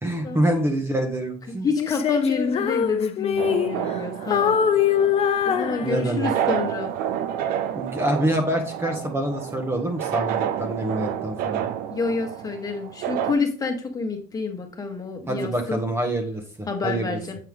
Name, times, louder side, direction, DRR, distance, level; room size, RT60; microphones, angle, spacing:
voice 1, 0.0-1.7 5.8-6.3 7.7-11.6 15.3-17.2, right 1 dB, 15° right, 4 dB, 1.2 m, -26 dB
voice 2, 1.5-4.6 5.4-6.9 11.9-15.8 16.7-17.4, left 4 dB, 20° left, 4 dB, 1.5 m, -28 dB
Female singing, 1.8-4.0 4.3-6.4, left 8 dB, 40° left, 0.7 m, -23 dB
sound 1, 3.4-13.3, right 10 dB, 65° right, 0.7 m, -29 dB
7.8 x 4.4 x 3.6 m, 0.39 s
supercardioid pair, 115°, 17 cm